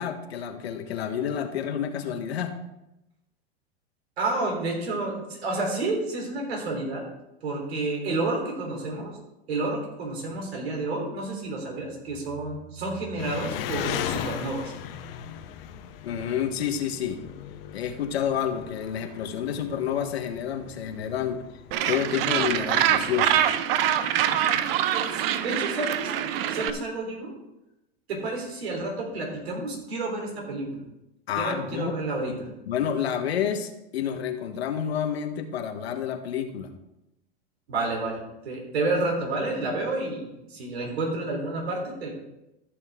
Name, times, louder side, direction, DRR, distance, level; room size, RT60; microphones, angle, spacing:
voice 1, 0.0-2.5 16.0-17.2 17.7-21.4 21.9-23.5 31.3-31.9 32.7-36.7, left 8 dB, 85° left, 6 dB, 1.4 m, -29 dB
voice 2, 4.2-7.1 7.4-9.1 9.5-14.7 24.9-26.1 26.5-27.3 28.1-30.8 31.4-32.5 37.7-38.2 38.4-42.1, right 2 dB, 85° right, 1 dB, 3.8 m, -30 dB
Engine, 13.2-23.4, left 9 dB, 65° left, 1.1 m, -38 dB
Gull seagull, 21.7-26.7, right 10 dB, 65° right, 0.8 m, -24 dB
14.0 x 6.5 x 3.7 m, 0.91 s
hypercardioid pair, 110°, 31 cm